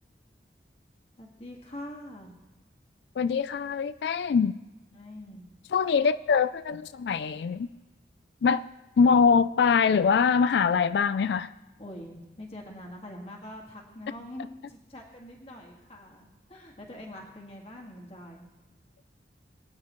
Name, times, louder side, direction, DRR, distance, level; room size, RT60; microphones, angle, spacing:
voice 1, 1.2-2.3 4.9-5.5 11.8-18.5, left 1 dB, 35° left, 1.7 m, -44 dB
voice 2, 3.2-4.5 5.7-7.7 8.4-8.6 9.0-11.5, left 6 dB, 75° left, 0.3 m, -23 dB
23.5 x 9.5 x 3.1 m
head